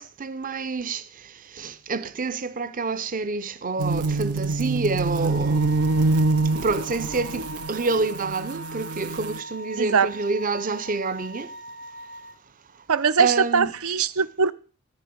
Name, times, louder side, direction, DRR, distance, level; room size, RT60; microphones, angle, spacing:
voice 1, 0.0-5.7 6.5-11.6 13.2-13.7, right 3 dB, 40° right, 0.7 m, -28 dB
sound 1, 3.8-9.4, right 3 dB, 90° right, 1.0 m, -25 dB
sound 2, 5.2-12.3, right 1 dB, 55° right, 6.2 m, -41 dB
voice 2, 9.8-10.1 12.9-14.5, right 5 dB, 75° right, 0.6 m, -21 dB
14.5 x 5.8 x 9.5 m
head